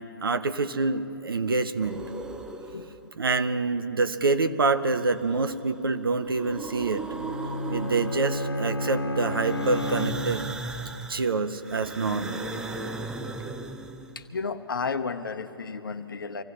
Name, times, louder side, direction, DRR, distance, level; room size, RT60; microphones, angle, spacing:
voice 1, 0.0-2.0 3.2-7.0 7.7-10.5 11.1-12.4, right 3 dB, 70° right, 9 dB, 0.9 m, -26 dB
sound 1, 1.8-3.1 4.8-5.7 6.1-8.6 9.4-14.3, right 3 dB, 5° right, 0.5 m, -37 dB
Bowed string instrument, 7.1-10.7, left 1 dB, 85° left, 1.2 m, -31 dB
voice 2, 14.1-16.4, left 5 dB, 65° left, 10 dB, 1.0 m, -32 dB
25.0 x 16.0 x 3.2 m, 2.9 s
figure-of-eight pair, 135°, 12 cm